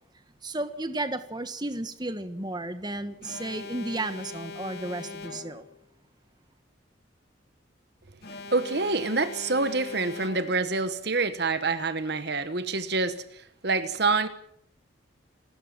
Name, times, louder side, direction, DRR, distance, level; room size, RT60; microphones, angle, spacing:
voice 1, 0.4-5.7, right 2 dB, 20° right, 1.4 m, -33 dB
Alarm, 3.2-5.8 8.2-10.8, left 4 dB, 55° left, 2.8 m, -41 dB
voice 2, 8.5-13.2 13.6-14.3, right 3 dB, 55° right, 1.2 m, -26 dB
29.0 x 13.5 x 7.5 m
head